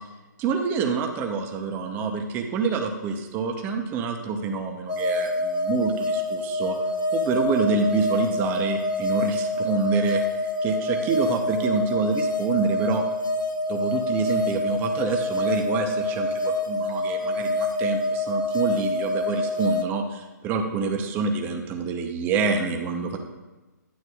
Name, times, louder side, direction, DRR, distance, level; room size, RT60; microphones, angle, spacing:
voice 1, 0.4-6.8 7.1-13.0 13.7-23.2, right 5 dB, 20° right, 5 dB, 0.7 m, -27 dB
sound 1, 4.9-19.8, left 2 dB, 75° left, 0.8 m, -26 dB
10.5 x 9.4 x 2.4 m, 1.1 s
figure-of-eight pair, 140°, 10 cm